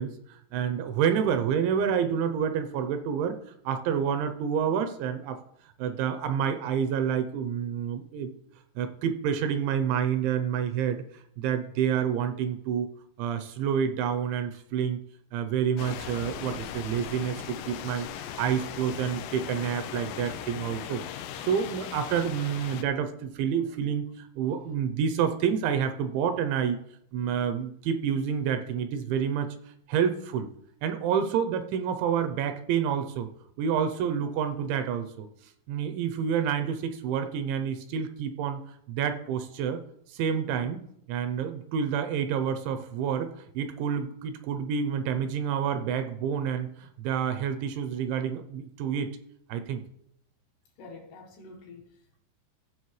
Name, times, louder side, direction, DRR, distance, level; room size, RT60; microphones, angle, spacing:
voice 1, 0.0-5.4 5.8-8.3 8.8-11.0 11.4-12.9 13.2-15.0 15.3-26.8 27.1-29.5 29.9-30.5 30.8-33.3 33.6-35.3 35.7-38.6 38.9-39.8 40.1-49.1 49.5-49.8, right 8 dB, 80° right, 2.8 m, -28 dB
sound 1, 15.8-22.8, left 10 dB, 90° left, 2.4 m, -38 dB
voice 2, 24.4-24.8 50.8-52.2, left 3 dB, 75° left, 2.8 m, -49 dB
15.5 x 6.0 x 3.1 m
omnidirectional pair, 5.5 m